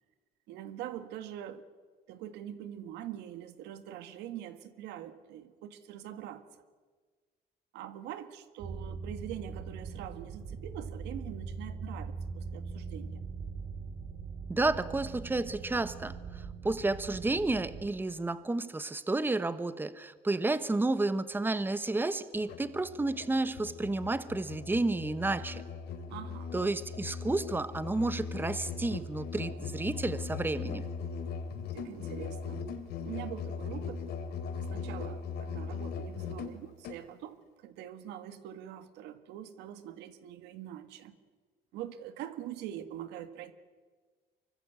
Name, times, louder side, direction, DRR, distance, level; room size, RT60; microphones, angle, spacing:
voice 1, 0.5-1.6 2.1-6.4 7.7-13.2 26.1-26.5 31.7-32.7 33.0-34.0 34.7-41.2 41.7-43.5, right 11 dB, 90° right, 10 dB, 1.6 m, -44 dB
sound 1, 8.6-17.9, right 5 dB, 60° right, 4.3 m, -41 dB
voice 2, 14.5-25.6 26.5-30.9, right 2 dB, 10° right, 13 dB, 1.0 m, -31 dB
Musical instrument, 22.4-37.0, left 5 dB, 75° left, 2.8 m, -39 dB
25.0 x 23.5 x 8.2 m, 1.5 s
cardioid pair, 110°, 17 cm